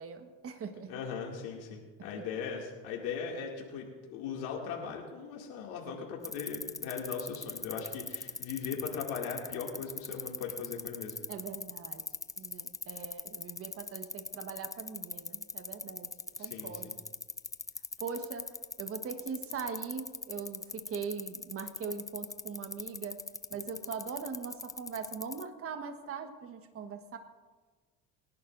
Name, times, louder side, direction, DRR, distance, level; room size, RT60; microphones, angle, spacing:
voice 1, 0.0-0.9 2.1-2.3 11.3-12.0 12.4-16.1 16.4-17.0 18.0-18.5 18.8-23.2 23.5-27.2, right 6 dB, 40° right, 7 dB, 1.3 m, -41 dB
voice 2, 0.9-11.1 16.4-16.9, left 6 dB, 80° left, -1 dB, 2.4 m, -39 dB
sound 1, 6.2-25.4, left 3 dB, 10° left, 0.4 m, -40 dB
22.5 x 11.0 x 2.6 m, 1.3 s
supercardioid pair, 85°, 34 cm